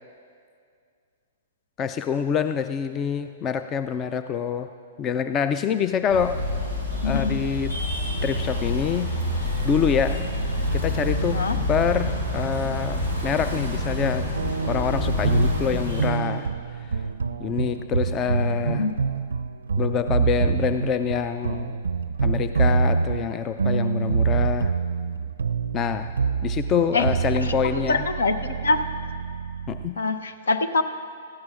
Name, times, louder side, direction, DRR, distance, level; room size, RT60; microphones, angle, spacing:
voice 1, 1.8-4.7 5.0-6.4 7.0-7.8 8.2-9.1 9.6-10.2 10.7-11.4 11.7-14.3 14.6-16.5 17.4-18.9 19.8-21.7 22.2-24.7 25.7-26.1 26.4-28.1 29.7-30.0, left 7 dB, 25° left, 10 dB, 0.4 m, -26 dB
sound 1, 6.1-16.1, left 1 dB, 90° left, 3.6 m, -27 dB
voice 2, 7.0-7.4 11.3-11.6 18.6-18.9 26.9-27.1 27.4-28.9 30.0-30.8, left 3 dB, 75° left, 10 dB, 0.8 m, -25 dB
sound 2, 14.3-29.9, right 5 dB, 75° right, 0.4 m, -26 dB
18.0 x 15.0 x 2.5 m, 2.2 s
figure-of-eight pair, 110°, 0 cm